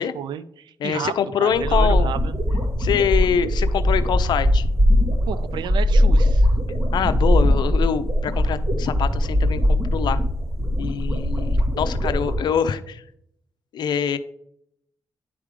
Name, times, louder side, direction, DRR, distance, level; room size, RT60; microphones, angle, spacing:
voice 1, 0.0-2.3 5.3-6.5, right 8 dB, 85° right, 15 dB, 0.4 m, -32 dB
voice 2, 0.8-2.1 2.8-4.7 6.9-10.2 10.8-13.0 13.7-14.2, left 8 dB, 75° left, 12 dB, 0.5 m, -24 dB
sound 1, 1.5-12.3, equal, 50° right, 2.1 m, -20 dB
10.0 x 3.5 x 5.0 m, 0.74 s
cardioid pair, 80°, 8 cm